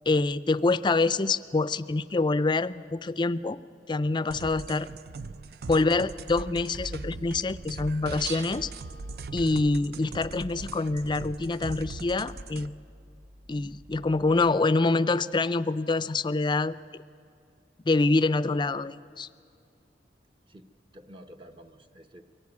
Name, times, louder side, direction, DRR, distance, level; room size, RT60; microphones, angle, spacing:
voice 1, 0.1-3.6 3.9-4.9 5.7-8.7 9.3-12.7 13.5-16.7 17.9-19.3, left 3 dB, 25° left, 15 dB, 0.4 m, -26 dB
sound 1, 4.3-12.7, right 3 dB, 60° right, 0.5 m, -40 dB
Bell / Dishes pots and pans, 7.8-14.5, right 3 dB, 80° right, 1.3 m, -48 dB
voice 2, 20.5-22.2, equal, 30° right, 6 dB, 0.8 m, -50 dB
23.5 x 15.5 x 9.5 m, 2.3 s
head